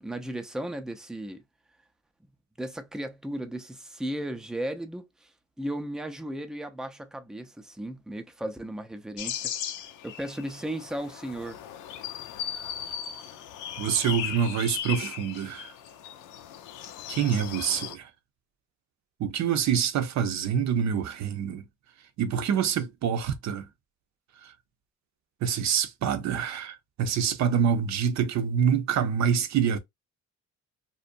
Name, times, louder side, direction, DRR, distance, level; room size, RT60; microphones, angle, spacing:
voice 1, 0.0-1.4 2.6-5.3 5.6-9.5 10.0-11.6, right 1 dB, ahead, 0.4 m, -35 dB
sound 1, 9.2-18.0, left 10 dB, 85° left, 0.5 m, -37 dB
voice 2, 13.8-15.7 17.1-18.1 19.2-21.6 22.2-23.6 25.4-29.8, right 7 dB, 65° right, 0.6 m, -26 dB
2.6 x 2.1 x 2.5 m
cardioid pair, 90°, 30 cm